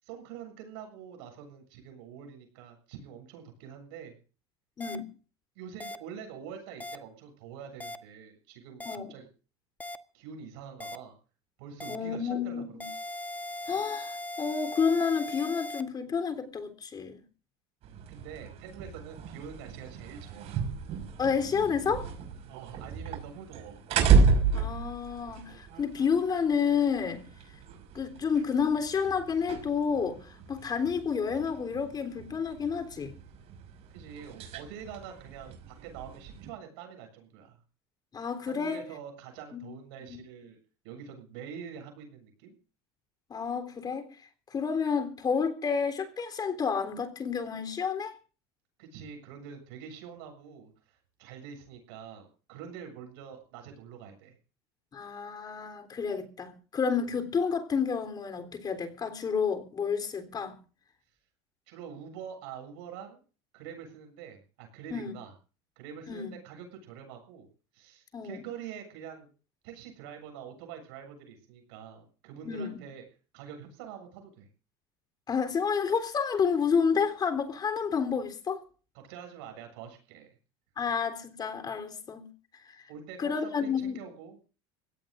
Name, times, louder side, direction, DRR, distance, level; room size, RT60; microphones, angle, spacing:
voice 1, 0.0-4.2 5.6-9.3 10.1-11.2 11.6-13.1 18.1-20.6 22.5-23.8 33.9-37.6 38.4-40.6 40.8-42.5 48.8-54.3 61.7-63.2 63.5-65.3 65.8-67.5 67.7-69.3 69.6-73.0 73.3-74.5 78.9-80.3 82.9-84.4, right 8 dB, 75° right, 7.3 m, -45 dB
voice 2, 4.8-5.1 8.9-9.1 11.9-12.8 13.7-17.2 21.2-22.1 24.5-27.2 27.9-30.2 30.5-33.1 38.1-38.8 39.5-39.7 40.1-40.2 43.3-44.1 44.5-48.2 54.9-60.6 64.9-65.1 66.1-66.3 68.1-68.4 72.4-72.8 75.3-78.6 80.8-82.3 82.6-82.8 83.2-84.0, left 6 dB, 30° left, 3.6 m, -30 dB
sound 1, 4.8-5.0 5.8-6.0 6.8-7.0 7.8-8.0 8.8-9.0 9.8-10.0 10.8-11.0 11.8-12.0 12.8-15.8, left 1 dB, 10° left, 1.2 m, -38 dB
sound 2, 17.8-36.5, right 5 dB, 55° right, 5.9 m, -32 dB
24.5 x 17.5 x 2.6 m
supercardioid pair, 95°, 13 cm